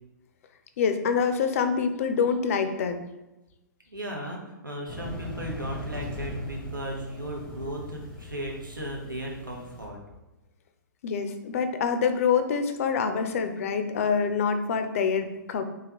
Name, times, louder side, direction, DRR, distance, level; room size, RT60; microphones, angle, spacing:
voice 1, 0.8-3.0 11.0-15.6, left 6 dB, 45° left, 8 dB, 0.4 m, -26 dB
voice 2, 3.9-10.0, right 1 dB, 85° right, -1 dB, 0.9 m, -36 dB
sound 1, 4.9-9.9, left 1 dB, 10° left, 0.7 m, -40 dB
3.7 x 3.2 x 2.9 m, 1.0 s
figure-of-eight pair, 115°, 11 cm